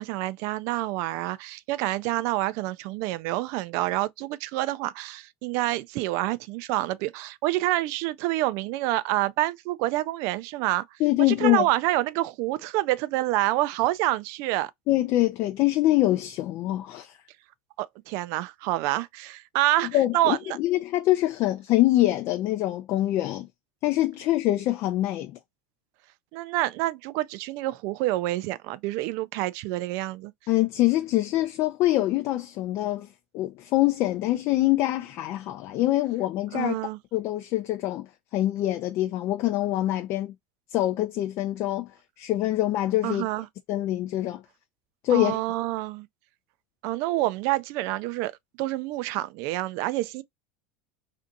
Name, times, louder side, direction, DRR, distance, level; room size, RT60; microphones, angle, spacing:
voice 1, 0.0-10.8 11.2-14.7 17.8-20.6 26.3-30.3 36.5-37.0 43.0-43.5 45.1-46.1 46.8-48.3 48.6-50.2, right 17 dB, 60° right, 0.3 m, -27 dB
voice 2, 11.0-11.7 14.9-17.1 19.9-23.5 23.8-25.4 30.5-33.1 33.3-36.7 37.1-38.1 38.3-40.3 40.7-41.9 42.2-43.2 43.7-44.4 45.0-45.4, left 15 dB, 55° left, 0.4 m, -24 dB
2.6 x 2.5 x 2.5 m
hypercardioid pair, 90°, 6 cm